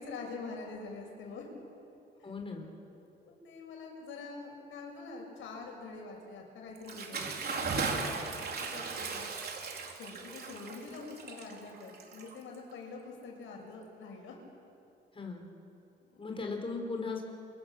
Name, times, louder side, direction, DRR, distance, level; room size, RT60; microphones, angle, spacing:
voice 1, 0.0-1.5 3.2-9.3 9.9-14.4 16.1-16.3, left 4 dB, 80° left, 1 dB, 6.6 m, -45 dB
voice 2, 2.2-2.7 15.1-15.4 16.2-17.2, left 4 dB, 25° left, 2 dB, 4.8 m, -37 dB
Bathtub (filling or washing) / Splash splatter, 6.8-12.7, right 4 dB, 50° right, 3.9 m, -37 dB
28.5 x 24.5 x 7.6 m, 2.6 s
cardioid pair, 90°, 20 cm